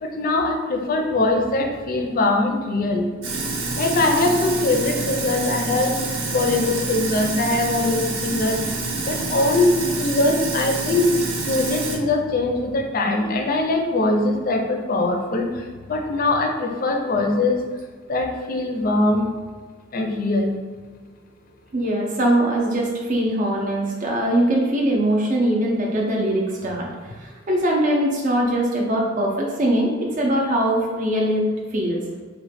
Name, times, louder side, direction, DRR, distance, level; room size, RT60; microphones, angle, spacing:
voice 1, 0.0-3.1 3.8-5.9 6.3-8.6 9.1-9.7 10.0-11.0 11.5-15.5 15.9-17.6 18.1-19.3 19.9-20.6, left 2 dB, 45° left, 3 dB, 0.4 m, -22 dB
Sink (filling or washing), 3.2-12.0, right 3 dB, 80° right, 0.6 m, -27 dB
voice 2, 21.7-26.9 27.2-32.0, right 1 dB, 40° right, -2 dB, 0.5 m, -21 dB
3.0 x 2.2 x 4.1 m, 1.5 s
head